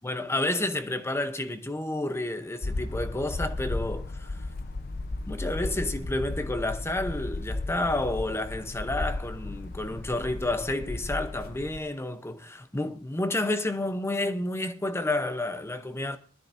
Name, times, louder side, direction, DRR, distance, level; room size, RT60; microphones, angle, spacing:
voice 1, 0.0-4.4 5.3-16.2, left 2 dB, 10° left, 0.7 m, -30 dB
sound 1, 2.6-11.8, left 2 dB, 45° left, 0.7 m, -34 dB
21.5 x 13.0 x 2.6 m
head